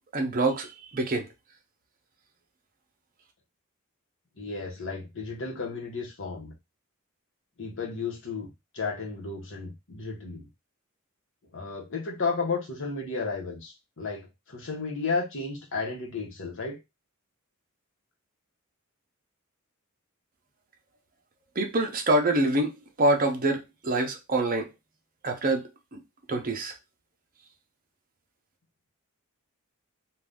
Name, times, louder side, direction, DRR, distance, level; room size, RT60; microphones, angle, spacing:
voice 1, 0.1-1.3 21.6-24.7 25.2-25.6 25.9-26.0 26.3-26.7, right 2 dB, 40° right, 0.7 m, -26 dB
voice 2, 4.4-6.5 7.6-10.5 11.5-16.8, left 4 dB, 60° left, 1.0 m, -33 dB
2.6 x 2.4 x 3.4 m
head